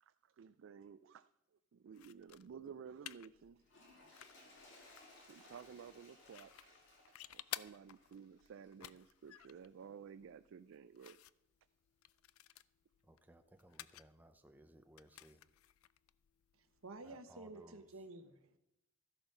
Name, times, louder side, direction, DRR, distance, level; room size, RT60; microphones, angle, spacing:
voice 1, 0.0-1.3 1.7-3.6 4.4-6.8 7.3-11.2, right 7 dB, 65° right, 0.3 m, -54 dB
sound 1, 1.9-17.1, left 13 dB, 85° left, 0.4 m, -55 dB
Toilet flush, 3.6-9.1 9.8-9.9, left 2 dB, 60° left, 3.0 m, -63 dB
voice 2, 13.0-15.4 17.0-17.8, right 1 dB, 10° right, 0.6 m, -62 dB
voice 3, 16.5-18.6, right 2 dB, 85° right, 1.1 m, -52 dB
13.5 x 7.1 x 5.5 m
head